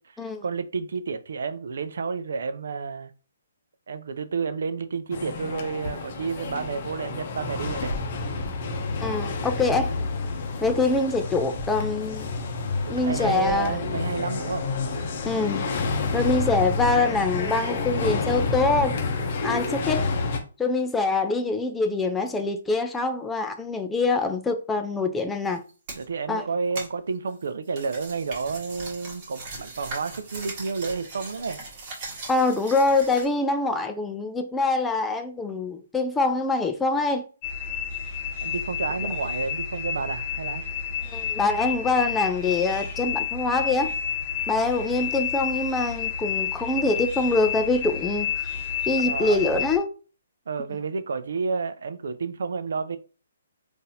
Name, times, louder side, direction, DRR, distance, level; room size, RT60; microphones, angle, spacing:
voice 1, 0.0-3.1 3.9-7.9 12.9-14.7 26.0-31.6 38.4-40.6 49.0-49.5 50.5-53.0, right 5 dB, 70° right, 0.4 m, -30 dB
sound 1, 5.1-20.4, left 3 dB, 45° left, 0.7 m, -29 dB
voice 2, 9.0-9.9 10.6-12.3 12.9-13.8 15.2-15.6 16.1-19.0 19.4-20.1 20.6-25.6 26.3-26.4 32.3-37.2 41.1-43.9 44.5-48.3 48.9-49.9, left 3 dB, 10° left, 0.3 m, -24 dB
sound 2, 25.5-26.0 26.8-33.3, right 3 dB, 35° right, 1.4 m, -39 dB
sound 3, 37.4-49.8, left 8 dB, 25° left, 1.1 m, -30 dB
3.9 x 2.5 x 2.7 m
hypercardioid pair, 155°, 0 cm